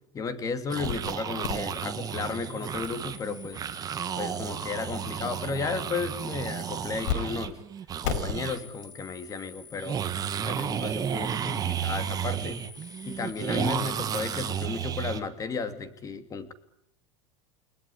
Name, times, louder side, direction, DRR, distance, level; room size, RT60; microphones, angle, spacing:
voice 1, 0.1-3.6 4.1-7.6 8.1-10.0 10.4-12.6 13.0-16.5, left 5 dB, 20° left, 11 dB, 2.5 m, -34 dB
sound 1, 0.7-8.6 8.8-8.9 9.8-15.2, right 8 dB, 25° right, 1.6 m, -32 dB
sound 2, 0.8-1.1 1.4-7.2 7.4-7.5 8.0-14.7, left 8 dB, 70° left, 4.8 m, -40 dB
30.0 x 20.0 x 9.9 m, 0.76 s
supercardioid pair, 155°, 16 cm